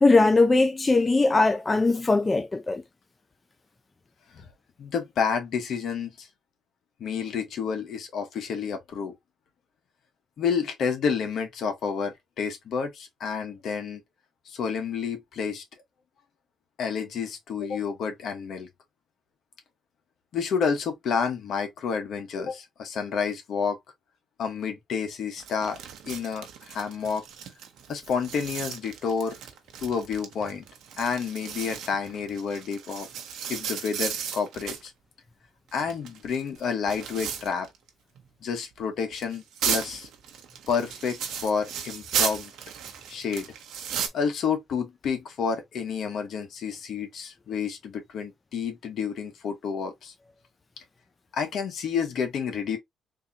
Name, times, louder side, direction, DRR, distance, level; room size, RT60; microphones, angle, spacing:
voice 1, 0.0-2.8, left 3 dB, 25° left, 0.5 m, -20 dB
voice 2, 4.8-6.3 7.0-9.1 10.4-14.0 14.5-15.6 16.8-18.7 20.3-23.8 24.4-25.8 26.1-27.2 27.9-29.4 29.8-30.6 31.0-33.1 33.5-34.9 35.7-37.7 38.4-40.1 40.7-42.5 43.1-43.5 44.1-50.1 51.3-52.8, left 6 dB, 70° left, 1.1 m, -29 dB
sound 1, 25.4-34.9 35.7-37.9 38.2-38.3 39.1-44.1, right 8 dB, 80° right, 0.8 m, -35 dB
3.6 x 2.8 x 2.7 m
cardioid pair, 90°, 0 cm